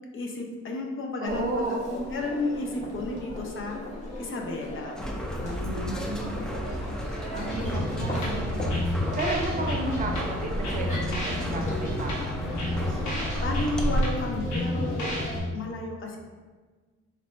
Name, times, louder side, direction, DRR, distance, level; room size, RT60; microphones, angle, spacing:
voice 1, 0.1-1.6 1.9-3.8 4.2-4.9 5.4-6.0 13.4-15.1 15.5-16.2, left 2 dB, 45° left, 1 dB, 0.7 m, -32 dB
voice 2, 1.2-2.1 5.6-6.6 7.3-12.6, right 2 dB, 25° right, 1 dB, 0.7 m, -33 dB
Crowd, 1.3-15.4, left 1 dB, 25° left, 1.3 m, -38 dB
sound 1, 5.0-14.0, equal, ahead, 0.4 m, -33 dB
sound 2, 7.5-15.5, left 1 dB, 75° left, 1.0 m, -31 dB
4.1 x 2.6 x 3.3 m, 1.4 s
cardioid pair, 90°, 30 cm